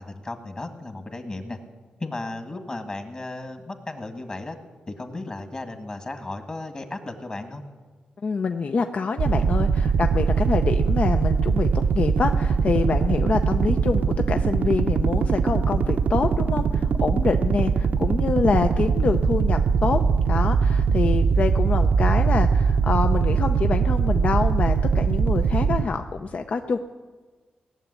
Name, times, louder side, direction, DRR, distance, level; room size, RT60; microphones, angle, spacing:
voice 1, 0.0-1.6 2.0-4.6 4.9-7.6, left 2 dB, 30° left, 6 dB, 1.7 m, -35 dB
voice 2, 8.2-20.0 20.3-26.8, left 4 dB, 50° left, 7 dB, 0.6 m, -26 dB
sound 1, 9.2-25.8, right 5 dB, 70° right, 0.7 m, -21 dB
18.0 x 7.1 x 9.8 m, 1.4 s
cardioid pair, 90°, 3 cm